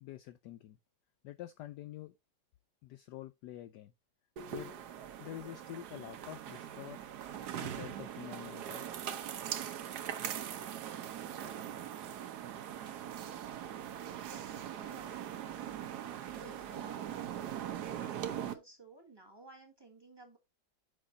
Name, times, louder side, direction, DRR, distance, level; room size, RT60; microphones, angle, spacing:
voice 1, 0.0-0.8 1.2-2.1 2.8-3.9 4.5-4.7 5.2-7.0 7.6-8.9, left 13 dB, 75° left, 1.0 m, -47 dB
sound 1, 4.4-18.5, right 10 dB, 60° right, 1.2 m, -41 dB
voice 2, 14.1-15.3 16.2-17.2 18.0-20.4, right 2 dB, 10° right, 2.0 m, -55 dB
6.4 x 5.7 x 3.9 m
omnidirectional pair, 2.2 m